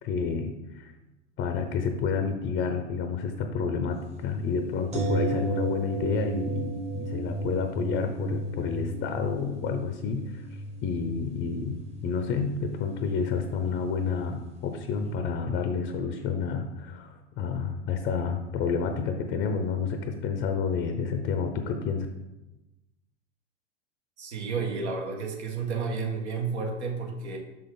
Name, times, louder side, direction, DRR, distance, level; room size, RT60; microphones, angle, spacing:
voice 1, 0.0-0.9 1.4-22.1, left 5 dB, 25° left, 6 dB, 0.7 m, -30 dB
sound 1, 4.9-14.8 15.1-15.2, right 2 dB, 15° right, 1.1 m, -34 dB
voice 2, 24.2-27.4, right 4 dB, 65° right, 0 dB, 1.7 m, -31 dB
6.3 x 6.0 x 3.8 m, 1.0 s
figure-of-eight pair, 95°, 36 cm